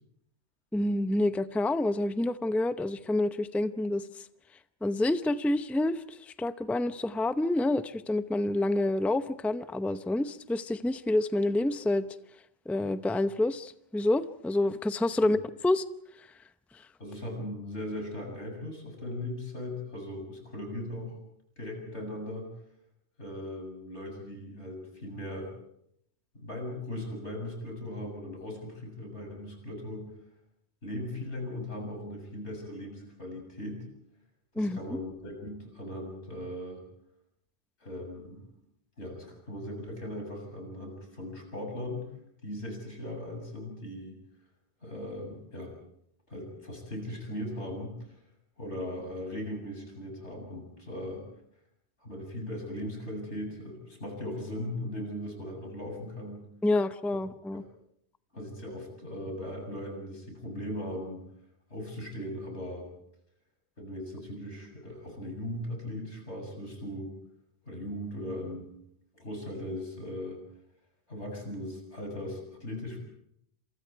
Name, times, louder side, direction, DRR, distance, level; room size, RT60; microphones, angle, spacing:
voice 1, 0.7-4.1 4.8-12.0 12.7-15.8 34.6-34.8 56.6-57.6, left 2 dB, ahead, 10 dB, 0.6 m, -28 dB
voice 2, 17.0-21.2 21.6-22.5 23.2-25.5 26.3-30.1 30.8-33.8 34.6-36.8 37.8-38.4 39.0-42.0 42.4-44.2 44.8-45.7 46.3-48.2 48.6-51.2 52.0-56.5 57.5-57.6 58.3-61.2 61.7-62.9 63.8-67.1 67.6-68.7 69.2-70.4 71.1-73.0, left 1 dB, 90° left, 2 dB, 8.1 m, -38 dB
29.0 x 27.0 x 4.7 m, 0.75 s
omnidirectional pair, 1.1 m